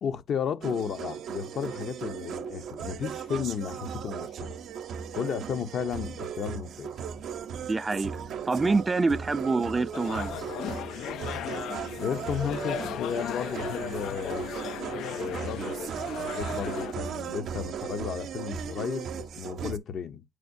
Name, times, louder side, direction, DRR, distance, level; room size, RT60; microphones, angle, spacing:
voice 1, 0.0-4.5 5.1-6.9 12.0-14.5 15.1-15.8 16.2-20.2, left 7 dB, 65° left, 0.8 m, -33 dB
sound 1, 0.6-19.8, right 7 dB, 70° right, 0.6 m, -37 dB
voice 2, 7.7-8.2 8.4-10.5, right 3 dB, 25° right, 0.4 m, -26 dB
sound 2, 9.9-16.9, left 11 dB, 85° left, 0.3 m, -37 dB
7.8 x 4.9 x 2.6 m
cardioid pair, 90°, 0 cm